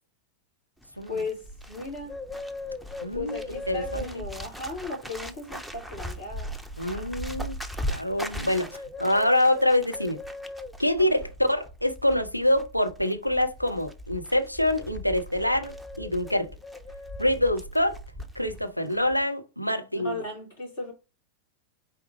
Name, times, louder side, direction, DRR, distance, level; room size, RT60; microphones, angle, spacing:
Bird, 0.8-18.6 18.9-19.2, left 1 dB, ahead, 0.5 m, -38 dB
voice 1, 1.1-2.2 3.1-6.5 11.0-11.1 20.0-20.9, left 3 dB, 65° left, 2.7 m, -36 dB
voice 2, 3.0-4.2 6.8-7.6 7.9-10.2 10.8-16.5 17.2-18.0 18.4-20.2, left 1 dB, 90° left, 0.6 m, -26 dB
4.5 x 3.5 x 3.1 m
figure-of-eight pair, 90°, 0 cm